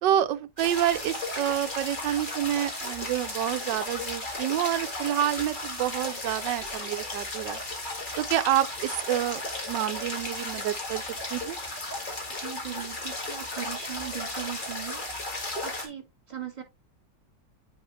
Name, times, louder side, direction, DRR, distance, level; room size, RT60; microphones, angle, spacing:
voice 1, 0.0-7.6 8.2-11.0 11.3-11.6, right 12 dB, 85° right, 1.3 m, -28 dB
sound 1, 0.6-15.9, left 2 dB, 30° left, 1.9 m, -35 dB
voice 2, 12.4-15.0 15.6-16.6, right 10 dB, 25° right, 1.9 m, -39 dB
9.5 x 4.0 x 3.2 m
omnidirectional pair, 1.9 m